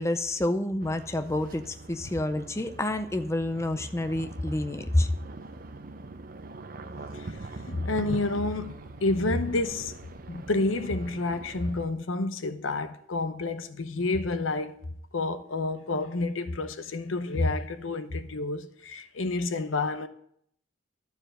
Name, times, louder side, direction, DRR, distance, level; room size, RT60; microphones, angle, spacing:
voice 1, 0.0-5.1, left 1 dB, 15° left, 0.5 m, -28 dB
sound 1, 0.8-11.9, right 2 dB, 45° right, 0.6 m, -42 dB
voice 2, 7.7-9.9 10.3-14.8 15.1-20.1, left 2 dB, 85° left, 0.8 m, -29 dB
12.0 x 4.7 x 7.8 m
head